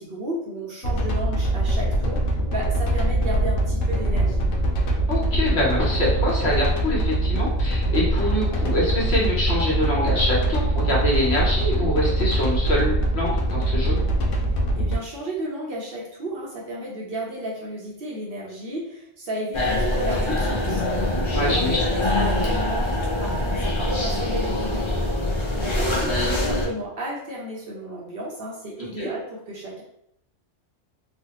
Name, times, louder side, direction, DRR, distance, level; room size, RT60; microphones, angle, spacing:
voice 1, 0.0-4.4 14.8-20.9 21.4-25.0 25.6-29.8, equal, 55° right, -3 dB, 0.8 m, -33 dB
sound 1, 0.8-14.9, right 1 dB, 85° left, 1.0 m, -23 dB
voice 2, 5.1-14.0 21.3-21.8 28.8-29.1, left 1 dB, 60° left, -4 dB, 1.2 m, -25 dB
sound 2, 19.5-26.7, left 1 dB, 45° left, 0.4 m, -24 dB
3.1 x 2.1 x 2.9 m, 0.73 s
omnidirectional pair, 1.3 m